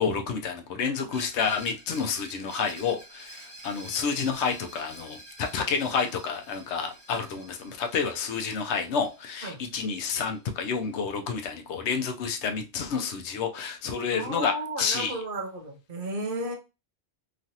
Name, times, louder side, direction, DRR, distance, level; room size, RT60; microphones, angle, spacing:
voice 1, 0.0-14.5 14.8-15.2, left 6 dB, 85° left, 0.9 m, -29 dB
Screech, 1.1-10.7, right 1 dB, 20° right, 0.9 m, -48 dB
voice 2, 14.1-16.5, right 1 dB, 55° right, 0.9 m, -33 dB
3.1 x 2.4 x 2.7 m
omnidirectional pair, 1.1 m